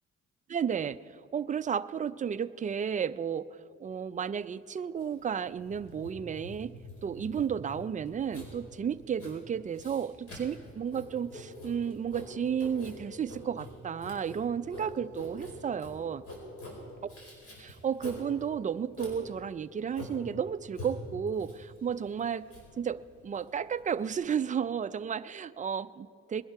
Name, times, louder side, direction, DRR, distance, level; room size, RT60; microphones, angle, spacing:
voice 1, 0.5-1.0 1.3-3.5 3.8-16.2 17.6-22.5 22.8-26.4, right 7 dB, 25° right, 14 dB, 0.4 m, -33 dB
Writing, 5.0-24.1, left 1 dB, 50° left, 4.6 m, -46 dB
20.5 x 11.0 x 4.7 m, 2.4 s
cardioid pair, 90°, 30 cm